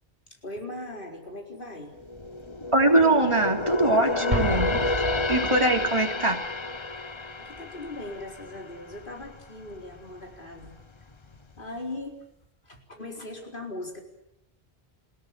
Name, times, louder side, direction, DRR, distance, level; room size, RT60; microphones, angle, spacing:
voice 1, 0.4-1.9 7.4-10.8 11.6-12.2 12.6-14.0, left 2 dB, 55° left, 2 dB, 4.6 m, -39 dB
sound 1, 1.9-9.4 9.8-10.0 10.5-11.3 11.6-11.7, left 2 dB, 30° left, 1.0 m, -30 dB
voice 2, 2.7-4.9 5.3-6.4, right 2 dB, 30° right, 2 dB, 3.5 m, -22 dB
Explosion, 4.3-6.0, right 1 dB, 45° right, 4.0 m, -30 dB
28.5 x 17.5 x 9.8 m, 0.84 s
omnidirectional pair, 1.0 m